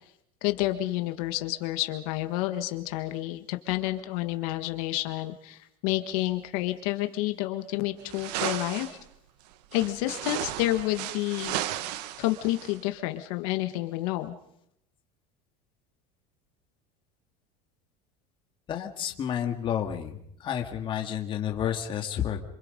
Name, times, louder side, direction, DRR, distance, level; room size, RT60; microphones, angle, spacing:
voice 1, 0.4-9.0 9.7-11.6 12.2-14.3, left 16 dB, 65° left, 7 dB, 1.6 m, -29 dB
sound 1, 8.1-9.0 9.7-12.8, right 13 dB, 90° right, 1.2 m, -34 dB
voice 2, 18.7-22.4, left 9 dB, 25° left, 3 dB, 2.1 m, -30 dB
27.5 x 26.0 x 5.3 m, 0.73 s
cardioid pair, 175°, 20 cm